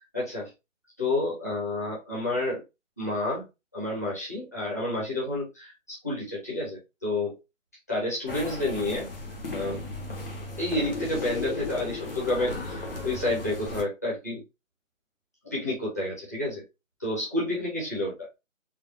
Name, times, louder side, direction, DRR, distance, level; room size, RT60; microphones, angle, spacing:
voice 1, 0.1-0.5 1.0-2.6 3.0-3.4 3.7-7.4 7.9-9.1 9.5-10.1 10.6-14.4 15.4-16.6 17.0-18.3, left 2 dB, 15° left, -8 dB, 0.9 m, -30 dB
sound 1, 8.3-13.8, left 2 dB, 45° left, 1.0 m, -35 dB
4.0 x 2.2 x 2.6 m, 0.24 s
figure-of-eight pair, 165°, 39 cm